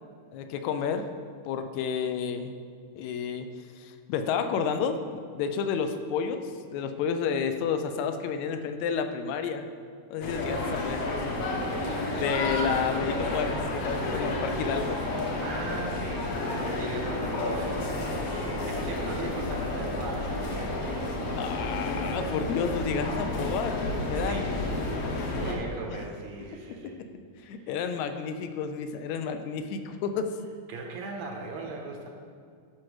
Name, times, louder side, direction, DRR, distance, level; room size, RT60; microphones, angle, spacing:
voice 1, 0.3-1.1 1.5-2.6 3.0-3.5 3.8-5.0 5.4-9.7 10.1-11.0 12.2-15.0 21.4-24.4 25.9-26.0 27.0-27.1 27.4-30.4, left 6 dB, 80° left, 8 dB, 1.8 m, -30 dB
sound 1, 10.2-25.5, left 2 dB, 65° left, 1.9 m, -31 dB
voice 2, 11.4-13.0 15.4-21.9 24.1-24.9 25.2-27.0 27.4-27.7 30.7-32.1, right 3 dB, 70° right, 1 dB, 2.0 m, -40 dB
11.5 x 6.0 x 3.2 m, 2.3 s
omnidirectional pair, 3.4 m